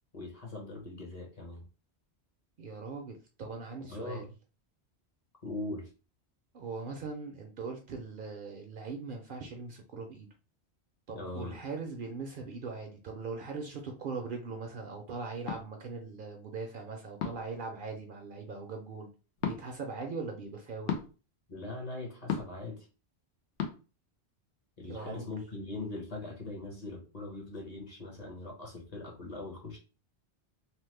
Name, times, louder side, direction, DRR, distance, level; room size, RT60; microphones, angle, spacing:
voice 1, 0.1-1.6 3.9-4.3 5.4-5.9 11.1-11.5 21.5-22.9 24.8-29.8, left 2 dB, 40° left, 0 dB, 0.9 m, -41 dB
voice 2, 2.6-4.3 6.5-10.3 11.1-19.1 19.4-21.0 24.8-25.3, right 4 dB, 60° right, 3 dB, 0.6 m, -40 dB
sound 1, 15.5-15.6 17.2-17.5 19.4-19.6 20.9-21.1 22.3-22.6 23.6-23.7, left 8 dB, 90° left, 0.9 m, -33 dB
2.9 x 2.1 x 3.2 m, 0.34 s
omnidirectional pair, 1.1 m